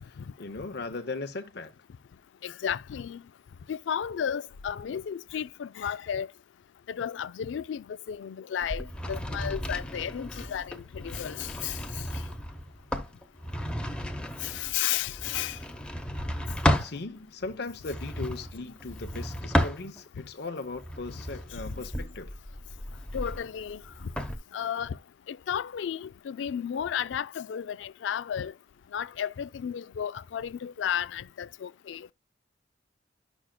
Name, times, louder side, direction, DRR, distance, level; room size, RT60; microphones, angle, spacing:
voice 1, 0.0-1.7 16.8-22.3, left 3 dB, 60° left, 0.8 m, -38 dB
voice 2, 2.4-3.2 3.7-6.3 6.9-11.8 12.1-12.2 14.4-15.6 23.1-24.1 24.5-25.0 25.3-28.5 28.9-32.1, left 9 dB, 85° left, 0.3 m, -33 dB
sound 1, 8.6-17.0 17.8-20.2 20.7-24.4, equal, 5° left, 0.9 m, -33 dB
10.0 x 6.2 x 2.3 m
head